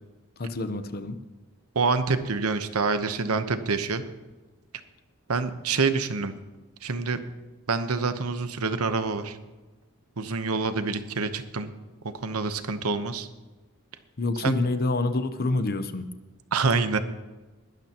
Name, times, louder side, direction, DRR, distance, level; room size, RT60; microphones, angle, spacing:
voice 1, 0.4-1.2 14.2-16.1, left 2 dB, 45° left, 10 dB, 0.8 m, -27 dB
voice 2, 1.7-4.0 5.3-6.3 6.8-7.2 7.7-9.4 10.2-11.7 12.1-13.3 14.4-14.5 16.5-17.0, right 4 dB, 85° right, 10 dB, 1.0 m, -26 dB
20.5 x 12.0 x 3.0 m, 1.2 s
head